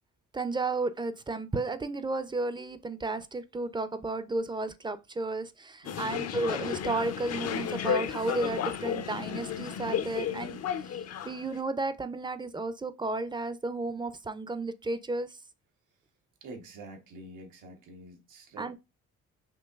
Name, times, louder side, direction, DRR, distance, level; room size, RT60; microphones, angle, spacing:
voice 1, 0.3-10.6 11.3-15.4 18.6-18.7, right 3 dB, 15° right, 0.5 m, -33 dB
sound 1, 5.8-11.6, left 8 dB, 55° left, 0.6 m, -33 dB
voice 2, 5.8-6.2 7.6-7.7 16.4-18.8, right 2 dB, 90° right, 1.2 m, -46 dB
5.2 x 3.0 x 2.3 m
cardioid pair, 90°, 30 cm